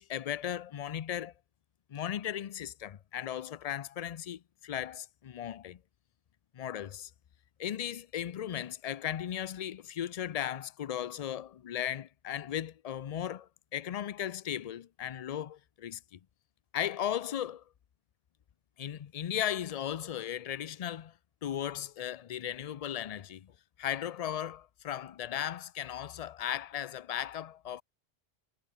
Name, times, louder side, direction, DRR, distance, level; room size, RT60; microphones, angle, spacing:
voice 1, 0.0-1.3 1.9-5.8 6.5-7.1 7.6-16.2 16.7-17.6 18.8-21.1 21.4-23.5 23.8-27.8, left 10 dB, 55° left, 0.4 m, -36 dB
omnidirectional pair, 1.1 m